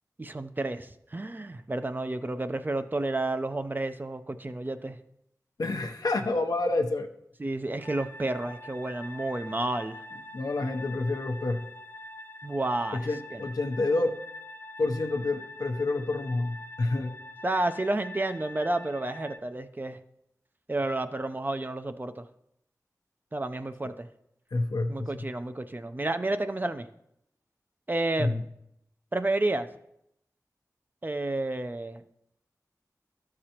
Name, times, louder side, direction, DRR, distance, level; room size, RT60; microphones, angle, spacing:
voice 1, 0.2-5.0 7.4-10.0 12.4-13.0 13.3-13.4 17.4-20.0 20.7-22.3 23.3-24.1 24.9-26.9 27.9-28.5 29.1-29.7 31.0-32.0, right 2 dB, 30° right, 10 dB, 0.5 m, -31 dB
voice 2, 5.6-7.1 10.3-11.7 12.9-14.1 14.8-17.1 23.8-23.9 24.5-25.2 28.2-28.4, left 2 dB, 85° left, 4 dB, 0.7 m, -28 dB
sound 1, 7.8-19.4, left 1 dB, 30° left, 0.5 m, -45 dB
12.5 x 6.7 x 2.9 m, 0.78 s
wide cardioid pair, 65°, 6 cm